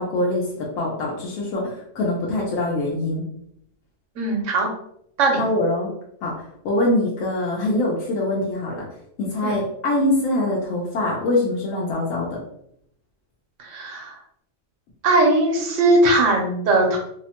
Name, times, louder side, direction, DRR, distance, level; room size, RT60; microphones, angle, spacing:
voice 1, 0.0-3.2 5.4-5.9 6.2-8.8 9.2-12.4, left 1 dB, 80° left, -3 dB, 1.0 m, -24 dB
voice 2, 4.2-4.7 5.2-5.4 9.4-9.5 13.6-14.2 15.0-17.0, right 2 dB, 70° right, 1 dB, 1.0 m, -19 dB
2.8 x 2.0 x 2.8 m, 0.73 s
omnidirectional pair, 1.4 m